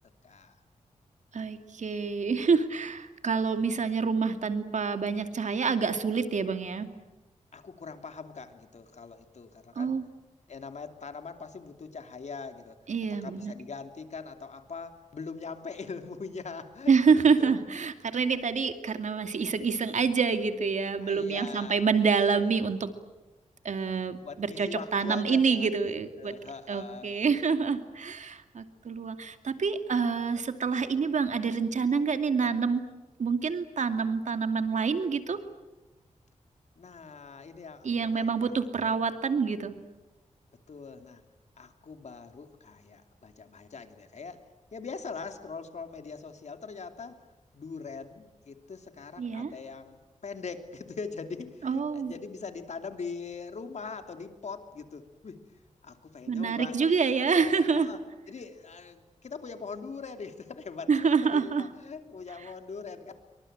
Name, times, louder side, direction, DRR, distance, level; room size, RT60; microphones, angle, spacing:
voice 1, 0.2-0.6 7.5-9.9 10.5-12.8 13.2-17.5 21.0-22.1 22.4-22.5 24.1-27.1 32.4-32.5 36.8-38.3 38.7-38.9 40.7-41.2 41.6-44.4 44.7-47.2 47.5-55.4 55.8-57.0 57.7-58.0 58.3-63.1, left 4 dB, 65° left, 7 dB, 2.9 m, -42 dB
voice 2, 1.3-6.9 9.8-10.0 12.9-13.5 16.9-22.9 23.6-26.3 26.7-32.8 33.2-35.4 37.8-39.7 49.2-49.5 51.6-52.1 56.3-57.9 60.9-61.6, right 5 dB, 70° right, 8 dB, 2.5 m, -27 dB
27.0 x 24.0 x 8.9 m, 1.1 s
wide cardioid pair, 85°, 13 cm